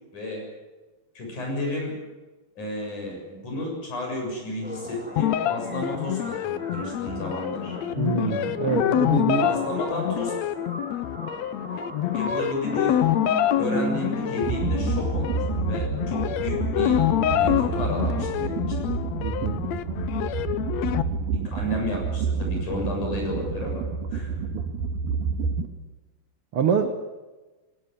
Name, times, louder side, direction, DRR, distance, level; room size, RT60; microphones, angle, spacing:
voice 1, 0.1-0.4 1.2-1.9 2.6-7.8 9.4-10.3 12.1-13.0 13.2-17.0 17.3-18.6 21.3-23.8 24.1-24.3, left 1 dB, 55° left, 0 dB, 8.6 m, -32 dB
sound 1, 4.6-18.6, right 1 dB, 5° right, 1.4 m, -38 dB
sound 2, 5.2-21.0, left 12 dB, 75° left, 1.6 m, -26 dB
voice 2, 8.0-9.5 19.2-19.6 24.5-24.6 26.5-26.9, right 6 dB, 55° right, 6 dB, 1.6 m, -25 dB
sound 3, 14.4-25.7, right 5 dB, 80° right, 3.4 m, -29 dB
20.0 x 19.0 x 9.7 m, 1.2 s
omnidirectional pair, 4.1 m